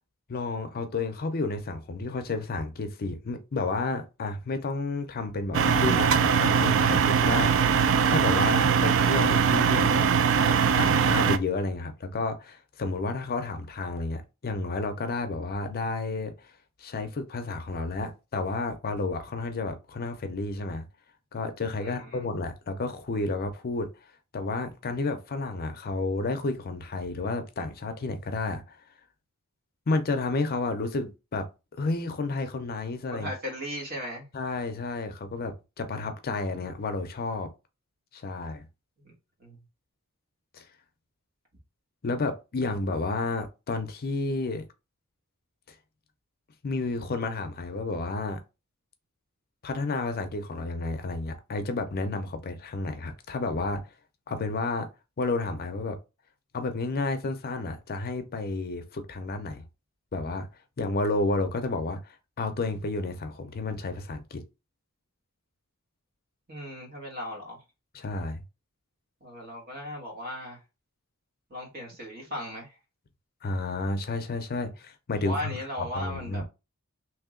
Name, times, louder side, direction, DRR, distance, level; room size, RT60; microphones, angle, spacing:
voice 1, 0.3-10.1 10.8-16.3 16.8-20.8 21.3-23.9 24.3-28.8 29.9-31.5 31.8-33.3 34.3-37.5 38.1-38.7 40.5-40.7 42.0-44.6 46.6-48.4 49.6-53.8 54.3-54.9 55.2-56.0 56.5-59.6 60.1-60.5 60.8-64.4 67.9-68.4 73.4-76.4, left 3 dB, 45° left, 0.5 m, -31 dB
sound 1, 5.5-11.4, right 6 dB, 65° right, 0.4 m, -22 dB
voice 2, 33.1-34.3 39.0-39.1 39.4-39.6 66.5-67.6 69.2-70.6 71.5-72.7 75.2-76.4, equal, 45° right, 1.4 m, -37 dB
3.0 x 2.8 x 3.7 m
head